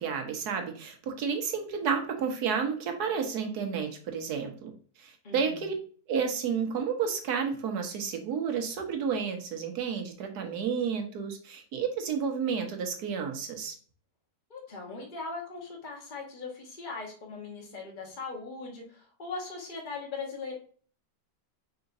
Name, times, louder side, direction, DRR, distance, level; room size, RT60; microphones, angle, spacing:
voice 1, 0.0-4.7 5.0-5.7 6.1-13.7, right 6 dB, 85° right, 4 dB, 1.5 m, -31 dB
voice 2, 5.2-5.7 14.5-20.5, left 4 dB, 35° left, 0 dB, 1.2 m, -39 dB
4.9 x 3.9 x 2.6 m, 0.44 s
omnidirectional pair, 1.7 m